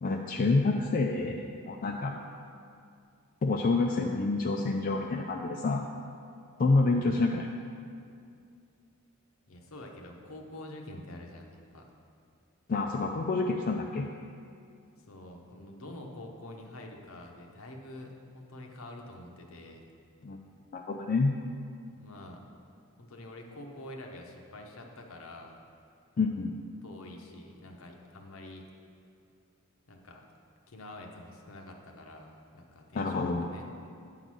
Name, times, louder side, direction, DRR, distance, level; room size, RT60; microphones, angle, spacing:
voice 1, 0.0-2.2 3.4-5.9 6.6-7.5 12.7-14.1 20.2-20.4 20.7-21.3 26.2-26.6 33.0-33.5, left 3 dB, 40° left, 1 dB, 0.3 m, -28 dB
voice 2, 6.9-7.3 9.5-11.9 15.1-19.8 21.9-22.4 23.0-25.6 26.8-28.7 29.9-30.2 30.7-33.7, left 1 dB, 65° left, 2 dB, 0.9 m, -47 dB
9.1 x 3.9 x 6.1 m, 2.4 s
head